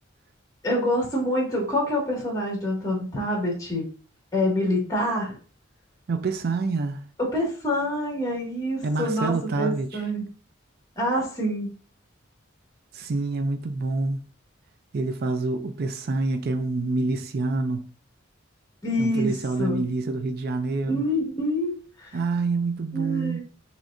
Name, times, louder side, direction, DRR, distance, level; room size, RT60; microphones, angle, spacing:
voice 1, 0.6-3.8 4.3-5.4 7.2-10.2 11.0-11.7 18.8-19.3 19.6-19.8 20.8-22.2 22.9-23.4, equal, 15° left, 1.9 m, -26 dB
voice 2, 6.1-7.0 8.8-10.0 12.9-14.2 14.9-17.9 19.0-21.0 22.1-23.4, right 3 dB, 50° right, 0.4 m, -27 dB
6.2 x 3.1 x 2.6 m
head